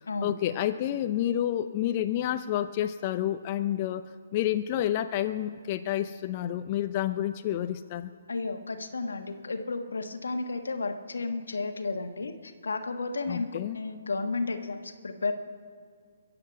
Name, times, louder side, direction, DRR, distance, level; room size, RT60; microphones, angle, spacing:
voice 1, 0.2-4.0 4.3-8.1 13.3-13.8, left 12 dB, 35° left, 9 dB, 0.6 m, -29 dB
voice 2, 8.3-15.3, left 3 dB, 80° left, 7 dB, 1.5 m, -33 dB
22.5 x 7.7 x 7.9 m, 2.2 s
hypercardioid pair, 140°, 0 cm